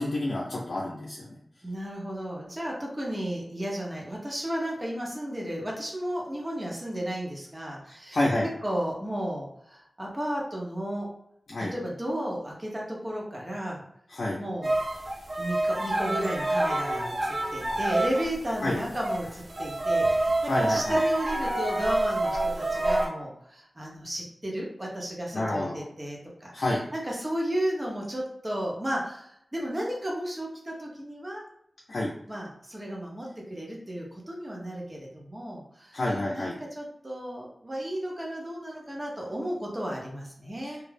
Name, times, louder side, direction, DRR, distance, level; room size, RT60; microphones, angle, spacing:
voice 1, 0.0-1.4 8.1-8.5 11.5-11.7 14.1-14.4 18.6-18.8 20.4-21.0 25.3-25.8 26.5-26.8 31.9-32.1 35.9-36.6, left 1 dB, 80° left, -5 dB, 0.5 m, -28 dB
voice 2, 1.6-8.2 8.6-11.1 11.6-13.8 14.4-14.7 15.4-31.4 32.3-36.0 36.3-40.8, right 1 dB, 25° right, -2 dB, 0.7 m, -33 dB
sound 1, 14.6-18.4 18.8-23.1, right 2 dB, 60° right, 0.6 m, -27 dB
2.3 x 2.0 x 3.2 m, 0.72 s
wide cardioid pair, 95°, 0 cm